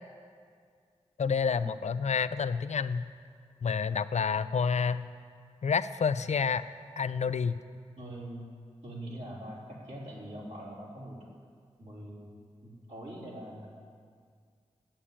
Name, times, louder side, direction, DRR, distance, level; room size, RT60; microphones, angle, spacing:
voice 1, 1.2-3.0 3.6-5.1 5.6-6.6 7.0-7.5, left 6 dB, 70° left, 14 dB, 0.5 m, -29 dB
voice 2, 8.0-8.5 8.8-11.2 11.8-12.3 12.6-13.7, right 1 dB, 80° right, -6 dB, 3.7 m, -43 dB
11.5 x 8.8 x 8.6 m, 2.1 s
cardioid pair, 50°, 12 cm